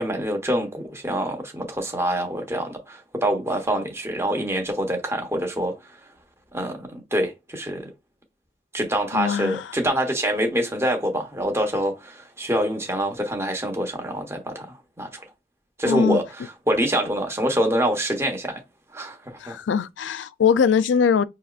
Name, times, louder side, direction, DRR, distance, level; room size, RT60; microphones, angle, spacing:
voice 1, 0.0-5.7 6.5-7.8 8.7-15.2 15.8-16.2 16.7-18.6 18.9-19.6, right 1 dB, 15° right, 0.8 m, -25 dB
voice 2, 9.1-9.7 15.9-16.2 19.4-21.2, left 6 dB, 90° left, 0.4 m, -21 dB
5.5 x 2.9 x 2.4 m
head